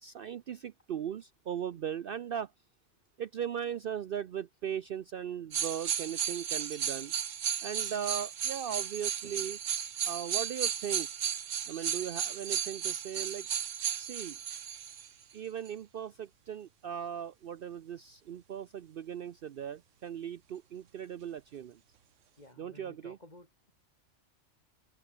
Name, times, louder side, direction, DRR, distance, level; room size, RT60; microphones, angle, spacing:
voice 1, 0.0-2.5 3.2-7.1 7.6-9.6 10.0-11.1 11.7-13.5 14.0-14.4 15.3-21.8 22.6-23.2, right 9 dB, 55° right, 0.7 m, -38 dB
sound 1, 5.5-15.1 15.7-15.8, right 8 dB, 85° right, 1.4 m, -34 dB
voice 2, 22.3-23.7, left 1 dB, 35° left, 4.7 m, -55 dB
omnidirectional pair, 1.3 m